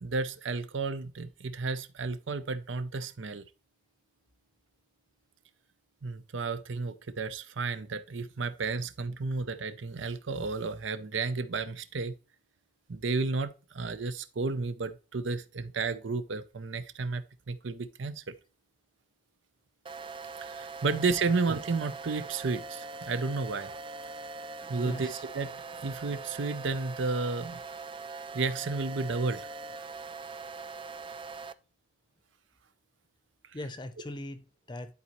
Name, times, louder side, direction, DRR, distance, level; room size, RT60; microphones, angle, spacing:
voice 1, 0.0-3.4 6.0-12.1 12.9-18.3 20.4-23.7 24.7-27.6 28.3-29.5, right 4 dB, 80° right, 0.6 m, -32 dB
sound 1, 19.9-31.5, right 4 dB, 25° right, 0.3 m, -42 dB
voice 2, 20.9-21.3 24.2-25.2 33.5-34.9, left 1 dB, 25° left, 0.6 m, -42 dB
11.0 x 4.1 x 3.0 m
head